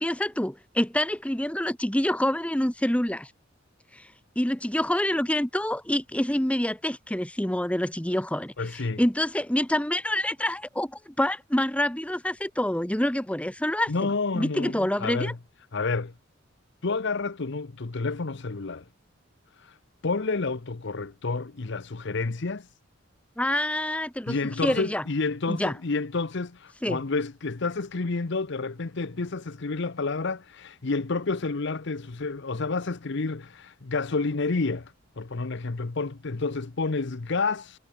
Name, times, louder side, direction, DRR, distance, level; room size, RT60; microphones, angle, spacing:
voice 1, 0.0-3.3 3.9-4.0 4.4-8.5 9.0-15.3 23.4-24.4 24.6-25.0 25.5-25.7 26.8-27.0, left 1 dB, 5° left, 1.0 m, -27 dB
voice 2, 8.6-9.0 13.9-15.4 15.7-16.1 16.8-18.9 19.5-19.8 20.0-22.7 24.3-37.8, left 3 dB, 60° left, 0.8 m, -29 dB
head